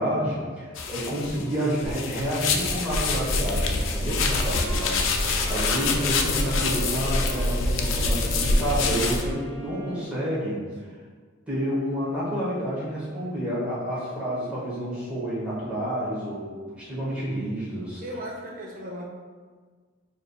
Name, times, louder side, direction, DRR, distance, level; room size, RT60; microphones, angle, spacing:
voice 1, 0.0-10.9 11.5-18.0, equal, 5° right, -9 dB, 1.0 m, -29 dB
sound 1, 0.8-9.2, left 3 dB, 75° left, 0.4 m, -26 dB
Wind instrument woodwind instrument, 2.7-7.5 7.8-10.4, right 2 dB, 90° right, 0.9 m, -44 dB
sound 2, 3.1-9.3, equal, 25° left, 1.3 m, -30 dB
voice 2, 14.2-14.6 18.0-19.1, equal, 45° right, -2 dB, 0.7 m, -37 dB
6.5 x 2.6 x 2.3 m, 1.5 s
head